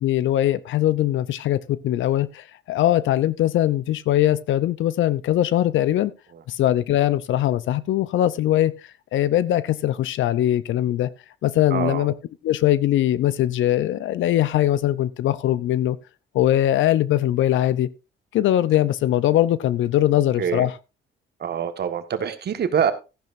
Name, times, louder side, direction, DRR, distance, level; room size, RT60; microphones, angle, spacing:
voice 1, 0.0-6.1 6.5-8.7 9.1-11.1 11.4-12.1 12.4-16.0 16.3-17.9 18.3-20.7, left 13 dB, 75° left, 0.7 m, -21 dB
voice 2, 11.7-12.1 20.4-20.7 21.4-22.9, right 8 dB, 55° right, 1.5 m, -25 dB
14.0 x 10.5 x 2.6 m
cardioid pair, 90°, 20 cm